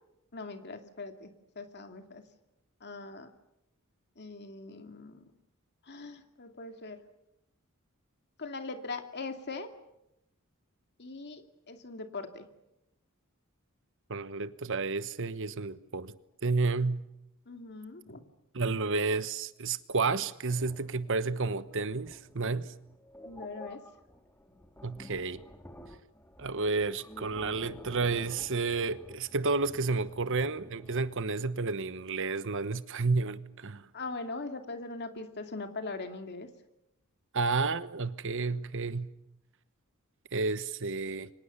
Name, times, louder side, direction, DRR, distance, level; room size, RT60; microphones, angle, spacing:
voice 1, 0.3-2.2 2.8-3.3 4.2-5.2 5.9-7.0 8.4-9.7 11.0-12.5 17.5-18.2 23.2-23.8 33.9-36.5, left 3 dB, 50° left, 2.4 m, -41 dB
voice 2, 14.1-16.1 16.4-17.1 18.5-22.7 24.8-25.4 26.4-33.9 37.3-39.1 40.3-41.3, right 3 dB, 65° right, 1.1 m, -31 dB
sound 1, 20.5-31.3, left 1 dB, 10° left, 2.2 m, -51 dB
29.5 x 24.5 x 6.9 m
head